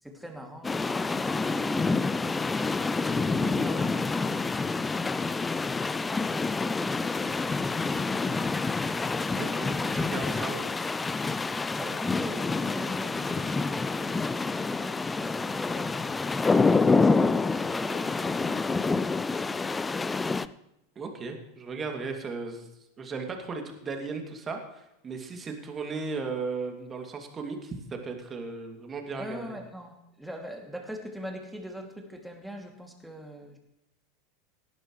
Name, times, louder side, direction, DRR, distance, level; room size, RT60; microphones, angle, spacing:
voice 1, 0.0-2.7 3.0-4.5 6.1-6.7 7.0-8.6 11.8-14.3 14.6-16.2 16.9-20.4 29.2-33.6, equal, ahead, 2 dB, 2.6 m, -43 dB
sound 1, 0.6-20.5, left 4 dB, 15° left, 0.5 m, -27 dB
voice 2, 9.4-10.6 21.0-22.7 23.0-29.5, right 4 dB, 25° right, 3 dB, 2.6 m, -36 dB
17.5 x 11.5 x 3.3 m, 0.90 s
figure-of-eight pair, 85°, 0 cm